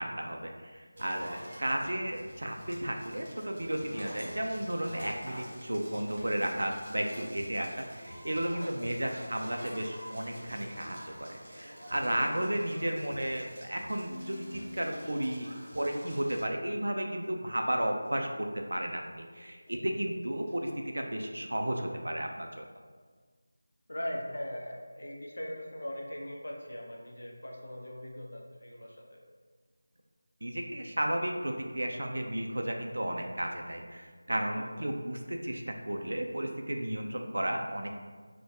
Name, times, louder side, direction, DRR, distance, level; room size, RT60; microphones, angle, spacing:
voice 1, 0.0-22.7 30.4-37.9, right 1 dB, 90° right, 2 dB, 0.3 m, -33 dB
Crackle, 1.0-16.4, equal, 25° right, 0.8 m, -49 dB
voice 2, 1.4-1.7 8.8-9.1 9.4-9.7 12.1-12.4 23.9-29.2 34.5-35.0, equal, 70° left, -1 dB, 0.6 m, -41 dB
Tools, 3.7-7.5 7.8-8.0 8.5-8.8 9.2-9.8, equal, 45° left, 0.9 m, -48 dB
sound 1, 14.1-21.4, left 2 dB, 15° left, 0.4 m, -51 dB
3.4 x 2.2 x 2.7 m, 1.5 s
figure-of-eight pair, 175°, 0 cm